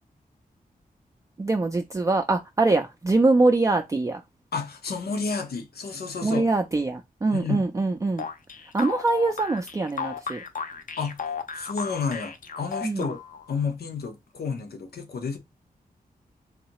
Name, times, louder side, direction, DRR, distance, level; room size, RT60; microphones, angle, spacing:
voice 1, 1.4-4.2 6.2-8.3 8.7-10.4 12.8-13.1, right 3 dB, 20° right, 0.3 m, -23 dB
voice 2, 4.5-6.4 7.3-7.6 11.0-11.2 11.5-13.2 13.5-15.4, left 5 dB, 85° left, 0.9 m, -31 dB
sound 1, 8.2-13.5, left 6 dB, 60° left, 0.5 m, -35 dB
4.0 x 2.7 x 2.9 m
wide cardioid pair, 140°, 16 cm